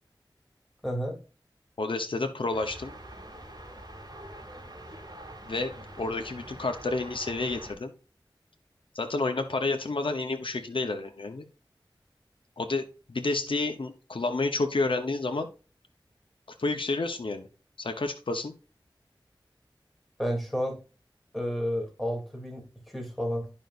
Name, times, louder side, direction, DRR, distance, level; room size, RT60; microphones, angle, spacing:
voice 1, 0.8-1.2 20.2-20.8 21.3-23.5, equal, ahead, 2.9 m, -31 dB
voice 2, 1.8-2.9 5.4-7.9 8.9-11.4 12.6-15.5 16.6-17.5 17.8-18.5, left 3 dB, 90° left, 1.0 m, -30 dB
sound 1, 2.5-7.7, right 1 dB, 50° right, 2.3 m, -45 dB
11.0 x 5.4 x 2.6 m
wide cardioid pair, 45°, 9 cm